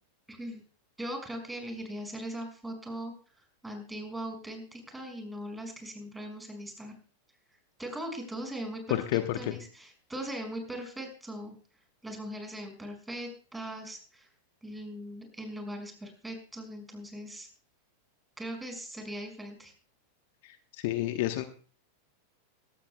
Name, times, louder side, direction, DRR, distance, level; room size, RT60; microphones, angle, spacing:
voice 1, 0.3-0.6 1.0-6.9 7.8-9.0 9.3-11.6 12.0-14.3 14.6-17.5 18.4-19.7, right 1 dB, 5° right, 3 dB, 5.7 m, -40 dB
voice 2, 9.1-9.5 20.8-21.4, left 15 dB, 50° left, 9 dB, 1.1 m, -29 dB
22.0 x 17.5 x 2.2 m, 0.41 s
figure-of-eight pair, 90°, 0 cm